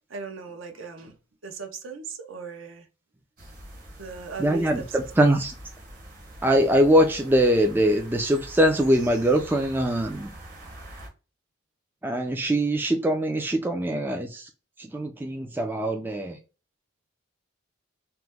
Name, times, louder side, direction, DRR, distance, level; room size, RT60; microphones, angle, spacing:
voice 1, 0.1-1.1 1.4-2.9 4.0-4.9, right 4 dB, 70° right, 0.7 m, -38 dB
sound 1, 3.4-11.1, right 1 dB, 45° right, 1.0 m, -44 dB
voice 2, 4.4-5.5 6.4-10.3 12.0-14.5 14.8-16.4, right 1 dB, 10° right, 0.3 m, -22 dB
2.9 x 2.1 x 3.4 m
head